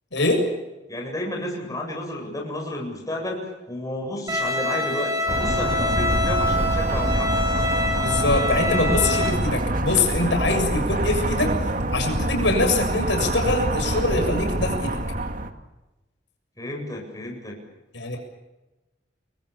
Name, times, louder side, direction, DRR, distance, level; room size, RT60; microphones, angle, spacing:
voice 1, 0.1-0.5 8.0-11.5 11.9-15.0 17.9-18.2, left 2 dB, 75° left, 3 dB, 7.2 m, -23 dB
voice 2, 0.9-7.7 14.6-14.9 16.6-17.6, left 1 dB, 20° left, 0 dB, 8.0 m, -32 dB
Bowed string instrument, 4.3-9.3, left 1 dB, 20° right, 5.5 m, -25 dB
sound 1, 5.3-15.5, right 1 dB, 50° right, 2.2 m, -25 dB
30.0 x 22.5 x 7.1 m, 1.0 s
head